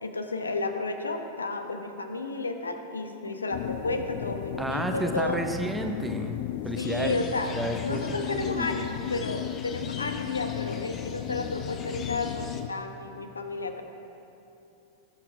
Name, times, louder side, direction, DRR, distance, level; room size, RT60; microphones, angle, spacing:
voice 1, 0.0-5.4 6.8-7.5 7.8-13.8, left 2 dB, 75° left, 6 dB, 1.0 m, -32 dB
sound 1, 3.5-12.7, left 15 dB, 50° left, 0.3 m, -35 dB
voice 2, 4.6-7.1 7.5-8.7, right 1 dB, 5° right, 4 dB, 0.9 m, -32 dB
sound 2, 6.8-12.6, left 4 dB, 30° left, 1.1 m, -43 dB
19.0 x 8.1 x 4.8 m, 2.9 s
figure-of-eight pair, 90°, 0 cm